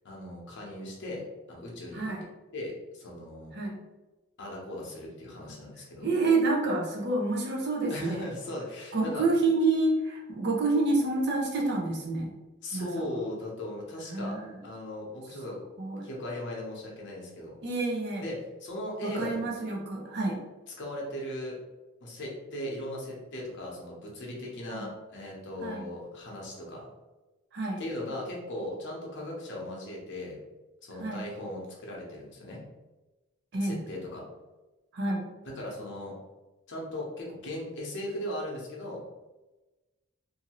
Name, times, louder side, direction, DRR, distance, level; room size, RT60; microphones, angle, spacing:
voice 1, 0.0-1.2 1.5-2.0 2.5-3.5 4.4-6.1 7.9-9.2 12.6-14.4 14.6-15.6 16.0-17.5 18.2-19.4 20.8-21.6 22.0-26.9 27.8-30.4 30.8-32.6 33.6-34.2 35.4-36.2 36.7-39.0, left 1 dB, 55° left, -2 dB, 0.8 m, -38 dB
voice 2, 6.0-8.3 8.9-12.3 12.7-12.9 14.1-14.5 15.8-16.1 17.6-18.2 19.0-20.4 24.7-24.9 25.6-25.9 27.5-27.8 31.0-31.2 33.5-33.8 34.9-35.3, right 3 dB, 50° right, -1 dB, 0.6 m, -28 dB
2.6 x 2.6 x 2.9 m, 1.1 s
head